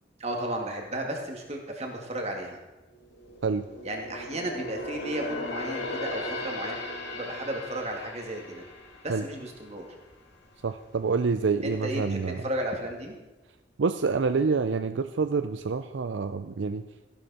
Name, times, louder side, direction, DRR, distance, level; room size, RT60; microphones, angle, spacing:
voice 1, 0.2-2.6 3.8-6.8 7.1-8.6 9.0-9.9 11.6-13.2, right 1 dB, 35° right, 1 dB, 2.3 m, -34 dB
sound 1, 3.0-10.5 10.8-11.1 11.6-12.3 12.7-12.8, left 2 dB, 60° left, 2.2 m, -38 dB
voice 2, 10.6-12.4 13.8-16.8, right 4 dB, 75° right, 10 dB, 0.5 m, -27 dB
14.5 x 12.0 x 4.3 m, 1.1 s
head